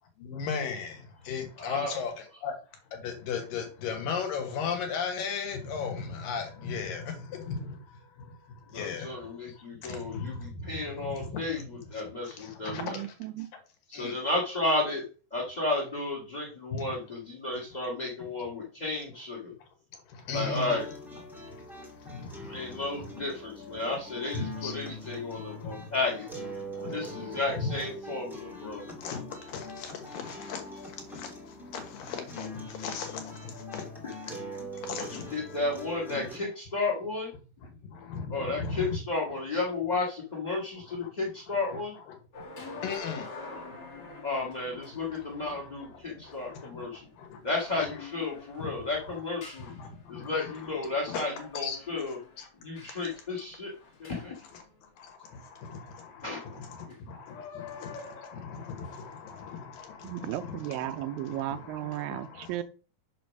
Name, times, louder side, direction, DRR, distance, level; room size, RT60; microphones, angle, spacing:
voice 1, 0.2-2.5 2.9-11.7 11.9-13.1 13.9-14.2 16.7-16.9 19.9-20.8 21.6-23.1 24.3-24.7 25.3-25.9 26.7-27.7 28.9-33.9 34.8-35.4 37.8-39.0 40.9-41.1 41.7-41.8 42.3-44.2 44.9-45.5 45.9-47.4 48.5-48.8 49.6-51.2 51.6-52.1 52.4-52.5 54.5-54.6 55.0-62.6, left 5 dB, 75° left, 3.1 m, -38 dB
voice 2, 1.6-2.0 8.7-13.0 13.9-19.5 20.3-20.9 22.5-26.3 26.8-28.8 34.9-37.3 38.3-41.9 44.2-47.1 47.4-49.7 50.1-52.2 52.6-53.7 54.0-54.4 56.2-56.9, left 3 dB, 60° left, 0.4 m, -33 dB
voice 3, 12.7-13.5 60.0-62.6, right 14 dB, 85° right, 2.3 m, -35 dB
sound 1, 20.3-36.4, equal, ahead, 0.6 m, -42 dB
sound 2, 42.3-55.1 56.8-57.0 57.3-59.1 59.8-60.0, left 3 dB, 40° left, 1.6 m, -48 dB
6.2 x 5.1 x 5.9 m
omnidirectional pair, 4.1 m